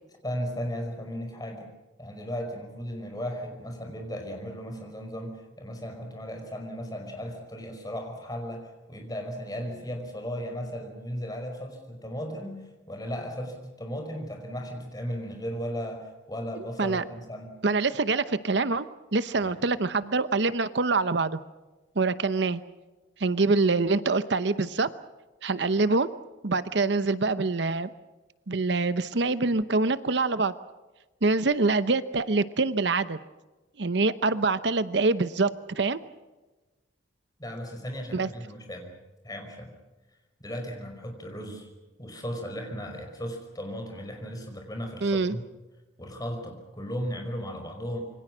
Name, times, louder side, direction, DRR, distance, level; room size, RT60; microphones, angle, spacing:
voice 1, 0.2-1.7 2.0-17.5 19.4-19.5 37.4-38.9 39.2-39.7 40.4-41.7 42.0-45.4 46.0-48.0, equal, 20° left, 4 dB, 5.4 m, -36 dB
voice 2, 17.6-18.9 19.1-21.4 22.0-22.6 23.2-24.9 25.4-26.1 26.4-27.9 28.5-30.5 31.2-33.2 33.8-36.0 38.1-38.3 45.0-45.3, right 3 dB, 65° right, 13 dB, 0.8 m, -25 dB
27.0 x 24.0 x 6.2 m, 1.2 s
head